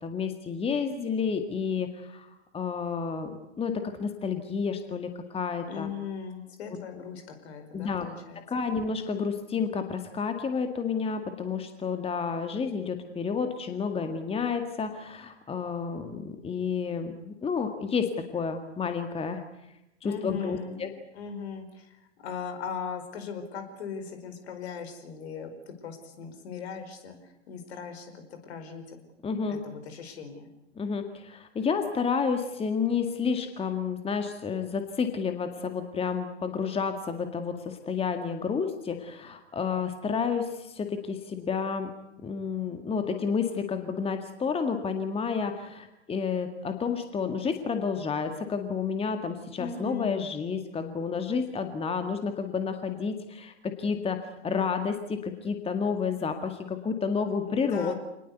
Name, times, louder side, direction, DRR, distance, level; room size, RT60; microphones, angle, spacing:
voice 1, 0.0-5.9 6.6-6.8 7.7-8.1 8.4-19.4 20.0-20.9 29.2-29.6 30.8-41.9 42.2-57.9, left 5 dB, 15° left, 7 dB, 2.0 m, -30 dB
voice 2, 5.7-8.4 20.0-21.9 22.2-29.0 29.5-30.5 49.6-50.3 57.4-57.9, left 6 dB, 60° left, 8 dB, 4.9 m, -39 dB
26.0 x 19.5 x 8.3 m, 0.88 s
figure-of-eight pair, 100°, 36 cm